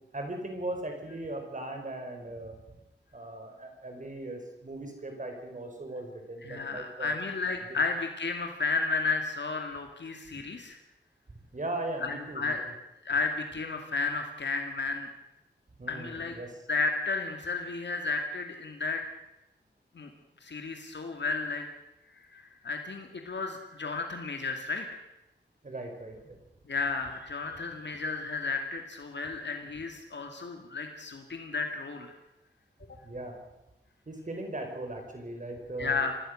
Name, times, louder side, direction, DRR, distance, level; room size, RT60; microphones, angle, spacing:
voice 1, 0.1-2.8 3.1-7.2 7.7-7.8 11.5-12.5 15.8-16.6 25.6-26.4 33.0-33.4 34.1-36.0, right 2 dB, 45° right, 4 dB, 4.4 m, -38 dB
voice 2, 6.4-10.8 12.0-12.7 13.0-15.1 15.9-16.4 16.7-19.0 19.9-20.1 20.4-21.6 22.1-24.9 26.7-32.1 35.8-36.2, left 4 dB, 75° left, 4 dB, 2.4 m, -33 dB
26.0 x 19.0 x 6.5 m, 0.94 s
wide cardioid pair, 90°, 19 cm